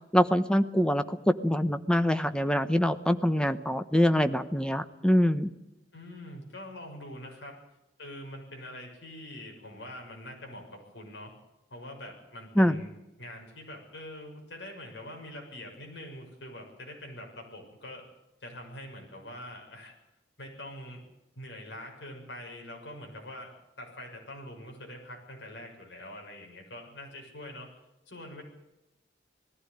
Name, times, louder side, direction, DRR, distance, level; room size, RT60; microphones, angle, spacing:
voice 1, 0.1-5.5 12.6-12.8, equal, 5° left, 10 dB, 1.0 m, -24 dB
voice 2, 5.9-7.6 8.0-11.3 11.7-12.9 13.2-18.0 18.4-19.9 20.4-21.0 21.3-27.7 28.1-28.4, left 1 dB, 80° left, 2 dB, 6.6 m, -44 dB
19.0 x 15.5 x 9.8 m, 0.94 s
head